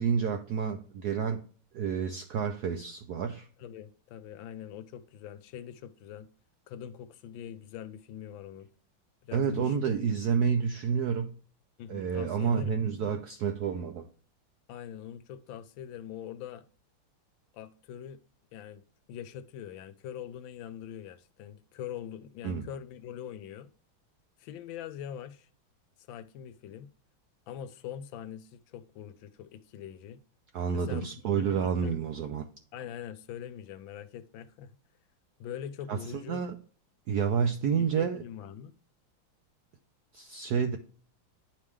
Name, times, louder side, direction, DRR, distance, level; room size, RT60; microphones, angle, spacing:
voice 1, 0.0-1.4 1.7-3.5 9.3-11.3 11.9-14.1 22.4-22.7 30.5-32.5 35.9-36.6 37.1-38.2 40.1-40.8, right 6 dB, 80° right, 0.8 m, -29 dB
voice 2, 3.6-6.3 6.7-8.7 9.2-9.7 11.8-12.8 14.7-16.6 17.5-18.2 18.5-18.8 19.1-23.7 24.4-25.5 26.1-26.9 27.5-30.2 30.7-32.0 32.7-34.7 35.4-36.4 37.4-38.7, left 9 dB, 75° left, 1.3 m, -43 dB
10.0 x 3.5 x 3.2 m
omnidirectional pair, 2.3 m